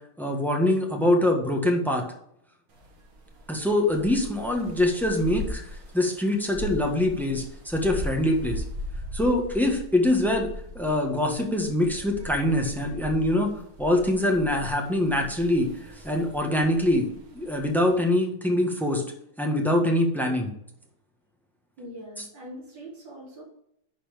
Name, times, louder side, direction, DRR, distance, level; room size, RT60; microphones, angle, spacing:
voice 1, 0.2-2.0 3.5-5.6 5.9-8.6 9.1-13.5 13.8-15.7 16.0-17.1 17.3-19.0 19.4-20.5, left 1 dB, ahead, 2 dB, 1.2 m, -24 dB
sound 1, 2.7-18.1, left 1 dB, 50° right, 2.0 m, -39 dB
voice 2, 21.8-23.4, equal, 80° right, -4 dB, 3.6 m, -42 dB
11.0 x 4.3 x 5.1 m, 0.76 s
omnidirectional pair, 2.0 m